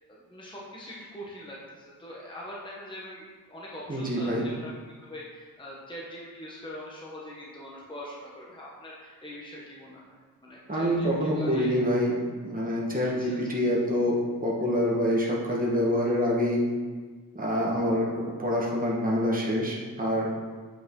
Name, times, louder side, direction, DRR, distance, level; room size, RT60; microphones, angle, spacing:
voice 1, 0.1-10.1 10.4-11.8 13.0-13.4, equal, 15° left, -5 dB, 1.0 m, -43 dB
voice 2, 3.9-4.4 10.7-12.2 12.4-16.6 17.3-20.3, equal, 25° right, -4 dB, 1.4 m, -26 dB
8.2 x 5.0 x 3.7 m, 1.5 s
wide cardioid pair, 150°, 35 cm